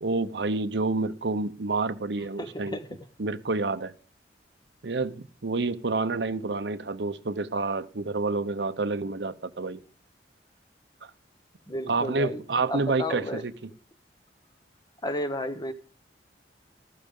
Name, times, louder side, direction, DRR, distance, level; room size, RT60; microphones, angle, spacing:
voice 1, 0.0-2.8 3.2-3.9 4.8-9.8 11.0-11.1 11.9-13.5, right 3 dB, 70° right, 0.7 m, -28 dB
voice 2, 2.4-3.0 11.7-13.4 15.0-15.7, left 1 dB, 25° left, 1.0 m, -33 dB
14.5 x 12.0 x 3.7 m
head